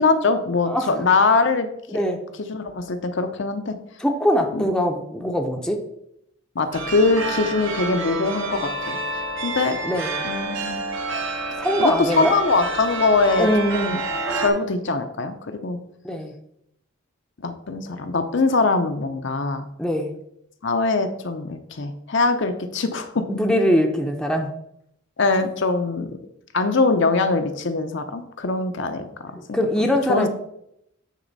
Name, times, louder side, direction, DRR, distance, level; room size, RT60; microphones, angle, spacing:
voice 1, 0.0-2.0 2.5-3.8 4.5-4.7 6.6-9.8 10.2-10.8 11.8-14.0 14.4-15.8 17.4-19.7 20.6-23.3 25.2-26.2 26.5-29.6 30.1-30.3, left 3 dB, 55° left, 7 dB, 0.6 m, -22 dB
voice 2, 1.9-2.2 4.0-5.8 9.8-10.2 11.6-12.3 13.4-14.0 16.0-16.3 19.8-20.1 23.3-24.5 29.4-30.3, equal, 5° left, 3 dB, 0.6 m, -22 dB
sound 1, 6.7-14.5, right 2 dB, 60° right, 1.3 m, -28 dB
9.1 x 4.1 x 4.0 m, 0.77 s
head